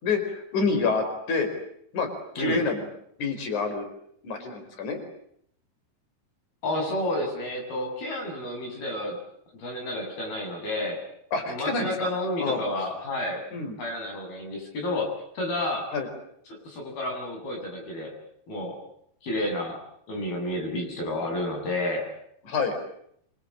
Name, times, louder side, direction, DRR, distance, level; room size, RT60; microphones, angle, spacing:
voice 1, 0.0-1.5 1.9-2.1 2.4-2.8 3.2-3.9 4.2-5.0 11.3-12.1 12.4-12.6 13.5-13.8 15.9-16.1 22.5-22.9, left 4 dB, 55° left, 6 dB, 6.0 m, -27 dB
voice 2, 6.6-9.2 9.5-11.0 11.5-13.4 13.8-15.9 16.5-18.1 18.5-18.8 19.2-19.8 20.1-22.0, left 1 dB, 80° left, 2 dB, 9.7 m, -30 dB
26.5 x 25.5 x 8.8 m, 0.71 s
omnidirectional pair, 4.3 m